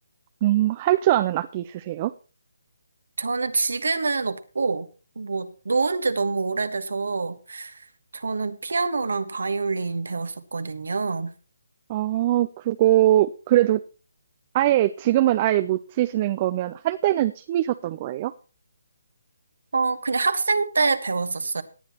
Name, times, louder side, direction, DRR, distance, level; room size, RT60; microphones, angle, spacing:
voice 1, 0.4-2.1 11.9-13.8 14.5-18.3, right 14 dB, 30° right, 12 dB, 0.5 m, -22 dB
voice 2, 3.2-4.9 5.1-7.8 8.1-11.3 19.7-21.6, right 4 dB, 70° right, 11 dB, 1.4 m, -26 dB
18.0 x 10.0 x 3.0 m, 0.35 s
figure-of-eight pair, 150°, 0 cm